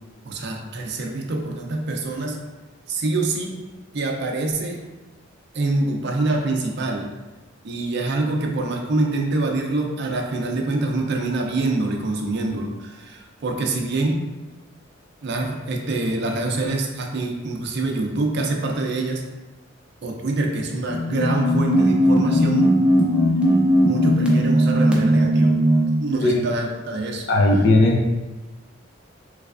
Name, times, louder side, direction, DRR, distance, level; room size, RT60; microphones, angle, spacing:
voice 1, 0.2-2.4 2.9-3.5 3.9-4.8 5.5-7.1 7.6-14.2 15.2-19.2 20.0-22.7 23.8-25.6 26.0-27.3, right 2 dB, 60° right, 2 dB, 0.5 m, -25 dB
sound 1, 20.8-26.0, equal, 5° right, 0.5 m, -18 dB
voice 2, 27.3-28.1, left 2 dB, 65° left, 1 dB, 0.5 m, -17 dB
3.2 x 3.1 x 2.4 m, 1.2 s
head